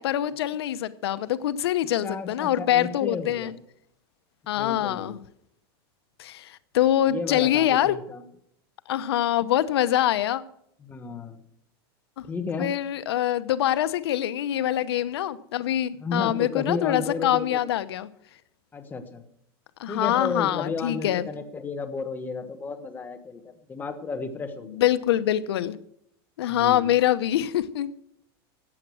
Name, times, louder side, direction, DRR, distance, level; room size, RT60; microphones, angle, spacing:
voice 1, 0.0-3.5 4.5-5.2 6.2-8.0 8.9-10.4 12.2-12.3 12.6-18.1 19.8-21.2 24.7-25.8 26.4-28.0, left 12 dB, 90° left, 13 dB, 0.9 m, -24 dB
voice 2, 2.0-3.5 4.6-5.1 7.1-8.2 10.8-11.4 12.2-12.7 16.0-17.7 18.7-19.2 19.9-24.8 26.5-26.9, left 4 dB, 15° left, 7 dB, 1.3 m, -33 dB
15.0 x 8.9 x 6.3 m, 0.71 s
supercardioid pair, 155°, 13 cm